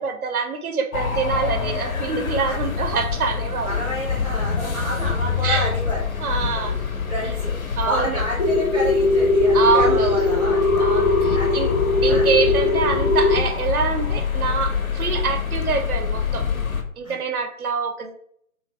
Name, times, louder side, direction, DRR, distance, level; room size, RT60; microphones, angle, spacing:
voice 1, 0.0-3.8 5.4-5.7 6.2-6.9 7.8-8.2 9.5-10.2 10.8-11.7 12.0-16.5 17.0-18.1, right 5 dB, 85° right, 6 dB, 0.6 m, -25 dB
sound 1, 0.9-16.8, left 6 dB, 75° left, 0.7 m, -26 dB
voice 2, 3.6-6.0 6.6-6.7 7.1-7.5 7.8-10.9 11.3-11.6 12.1-12.3 17.0-17.1 18.0-18.1, equal, ahead, -7 dB, 0.7 m, -29 dB
sound 2, 8.4-13.4, left 2 dB, 35° left, 0.4 m, -20 dB
2.6 x 2.1 x 3.1 m, 0.65 s
figure-of-eight pair, 140°, 42 cm